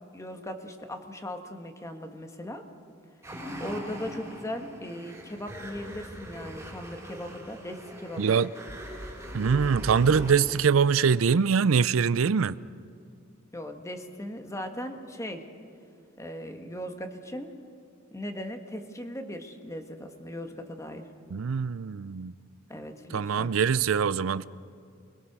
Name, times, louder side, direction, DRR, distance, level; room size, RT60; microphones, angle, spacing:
voice 1, 0.1-2.6 3.6-8.5 13.5-15.4 16.2-17.5 18.1-21.1 22.7-23.5, left 1 dB, 15° left, 1.7 m, -38 dB
sound 1, 3.2-10.4, equal, 10° right, 3.6 m, -40 dB
voice 2, 8.2-8.5 9.3-12.6 21.3-22.3 23.1-24.5, right 6 dB, 90° right, 0.5 m, -23 dB
27.5 x 21.0 x 6.1 m
head